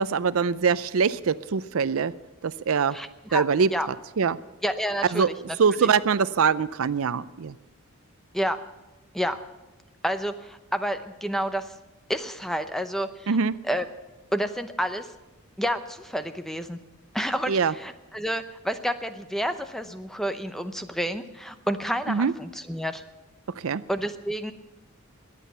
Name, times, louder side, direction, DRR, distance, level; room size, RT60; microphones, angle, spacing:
voice 1, 0.0-2.1 2.4-3.0 3.3-3.7 4.2-4.4 5.1-5.3 5.6-7.6 13.3-13.6 17.5-17.7 22.1-22.3 23.5-23.8, right 5 dB, 70° right, 16 dB, 0.5 m, -23 dB
voice 2, 2.9-3.4 3.7-3.9 4.6-5.6 8.3-8.6 9.1-9.4 10.0-11.7 12.1-13.3 13.7-13.8 14.3-15.1 15.6-16.8 17.1-23.0 23.9-24.5, equal, ahead, 9 dB, 0.7 m, -29 dB
21.0 x 8.5 x 6.9 m, 1.0 s
head